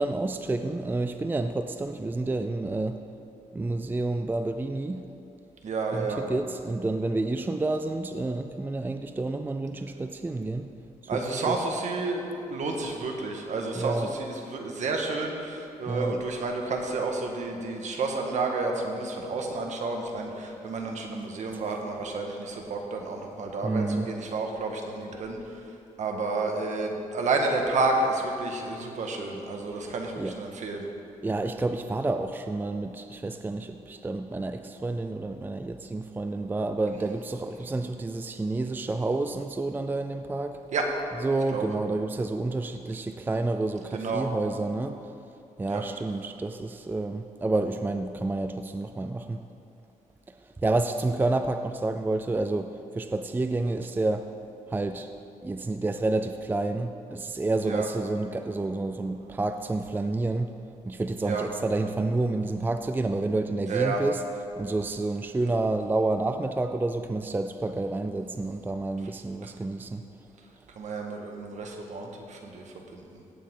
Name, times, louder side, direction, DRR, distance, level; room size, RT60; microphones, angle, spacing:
voice 1, 0.0-3.0 3.5-5.0 5.9-10.7 11.1-11.2 11.5-11.6 13.8-14.1 15.9-16.2 21.5-21.6 23.6-24.1 29.8-30.4 31.2-40.6 41.2-45.0 45.6-49.4 50.3-54.3 54.7-55.1 55.4-60.6 60.8-64.2 64.6-70.0, right 2 dB, 15° right, 8 dB, 0.4 m, -29 dB
voice 2, 5.6-6.2 11.1-30.8 40.7-40.9 41.5-41.7 43.9-44.3 45.7-45.8 57.6-57.9 61.2-61.4 63.7-64.0 69.4-69.5 70.4-70.5 70.7-73.2, right 3 dB, 65° right, 2 dB, 1.6 m, -30 dB
16.5 x 8.7 x 3.8 m, 2.9 s
cardioid pair, 105°, 13 cm